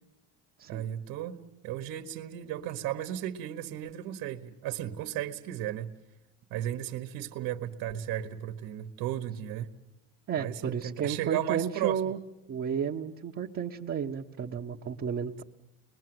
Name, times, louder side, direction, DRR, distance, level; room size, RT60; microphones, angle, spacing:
voice 1, 0.7-5.9 6.5-9.7 10.4-12.1, right 12 dB, 70° right, 7 dB, 1.5 m, -35 dB
voice 2, 10.3-12.2 12.5-15.4, right 8 dB, 40° right, -1 dB, 1.2 m, -32 dB
30.0 x 21.5 x 7.9 m, 0.91 s
cardioid pair, 115°, 35 cm